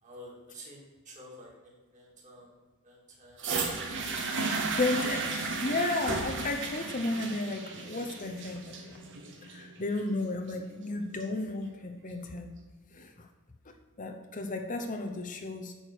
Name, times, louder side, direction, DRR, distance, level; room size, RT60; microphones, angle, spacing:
voice 1, 0.0-2.5 2.8-3.5, equal, 35° right, -2 dB, 2.8 m, -50 dB
sound 1, 3.4-11.4 12.2-12.3, right 4 dB, 55° right, 1.5 m, -34 dB
voice 2, 4.7-9.0 9.5-12.5 12.9-13.3 14.0-15.7, left 2 dB, 35° left, 5 dB, 0.8 m, -33 dB
8.9 x 6.3 x 6.5 m, 1.3 s
head